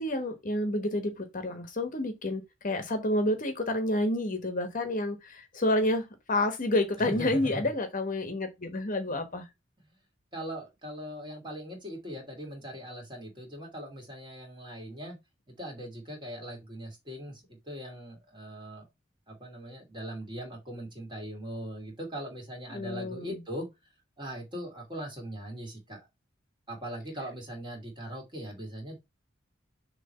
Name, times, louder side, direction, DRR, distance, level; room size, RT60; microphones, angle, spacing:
voice 1, 0.0-9.4 22.7-23.4, left 1 dB, 40° left, 1.2 m, -29 dB
voice 2, 7.0-7.7 10.3-15.2 15.5-18.9 19.3-23.7 24.2-26.1 26.7-29.0, right 1 dB, 25° right, 2.7 m, -40 dB
6.7 x 3.2 x 5.5 m
head